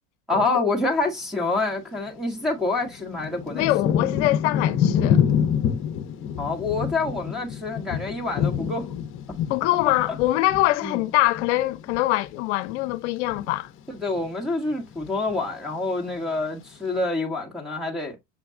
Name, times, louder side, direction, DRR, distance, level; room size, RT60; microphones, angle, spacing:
voice 1, 0.3-3.7 6.4-8.9 10.8-11.0 13.9-18.2, left 3 dB, ahead, 1.1 m, -27 dB
Thunder / Rain, 2.1-2.2 2.9-12.4 12.7-13.5 14.1-14.4 14.7-15.5 16.1-16.2, left 8 dB, 35° left, 0.8 m, -27 dB
voice 2, 3.5-5.2 9.5-13.7, left 17 dB, 75° left, 0.6 m, -23 dB
6.6 x 2.2 x 3.5 m
supercardioid pair, 130°, 35 cm